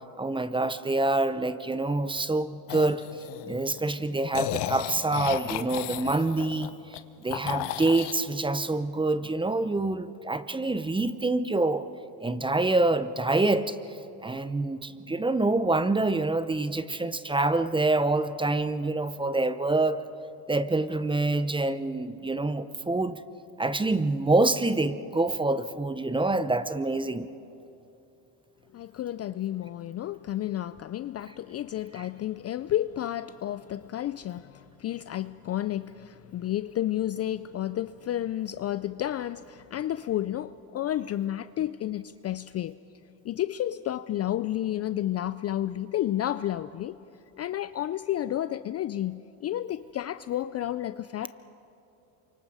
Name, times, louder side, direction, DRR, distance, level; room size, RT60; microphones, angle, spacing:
voice 1, 0.2-3.0 3.5-6.7 7.2-11.9 12.2-13.8 14.2-20.0 20.5-23.2 23.6-27.3, right 2 dB, 10° right, 0.7 m, -26 dB
sound 1, 2.7-3.8 4.3-7.0 7.3-8.2, left 13 dB, 60° left, 1.1 m, -34 dB
voice 2, 28.7-42.8 43.2-47.0 47.4-51.3, left 12 dB, 35° left, 0.4 m, -31 dB
28.0 x 24.5 x 4.9 m
supercardioid pair, 95°, 45 cm